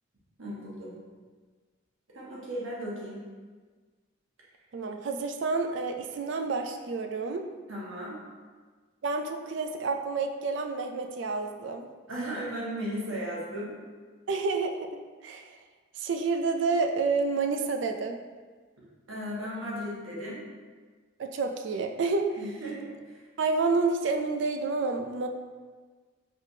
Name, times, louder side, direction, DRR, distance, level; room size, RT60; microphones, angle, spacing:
voice 1, 0.4-0.9 2.1-3.2 7.7-8.2 12.1-13.7 19.1-20.4 22.4-23.2, equal, 85° right, -6 dB, 1.3 m, -36 dB
voice 2, 4.7-7.5 9.0-11.9 14.3-14.9 15.2-15.5 16.0-18.2 21.2-22.4 23.4-25.3, right 4 dB, 65° right, 5 dB, 0.4 m, -29 dB
5.0 x 3.5 x 2.7 m, 1.4 s
head